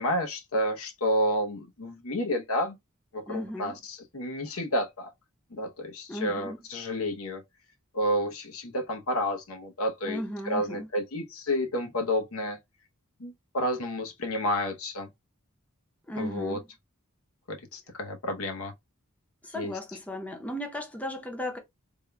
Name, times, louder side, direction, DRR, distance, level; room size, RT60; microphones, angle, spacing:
voice 1, 0.0-2.8 3.1-5.1 5.5-7.4 7.9-10.2 10.4-12.6 13.2-15.1 16.2-16.6 17.5-18.7 19.5-19.7, left 1 dB, 80° left, 0.9 m, -30 dB
voice 2, 3.3-3.8 6.1-6.6 10.0-10.9 16.1-16.7 19.4-21.6, equal, 5° left, 0.8 m, -35 dB
3.6 x 2.3 x 3.3 m
head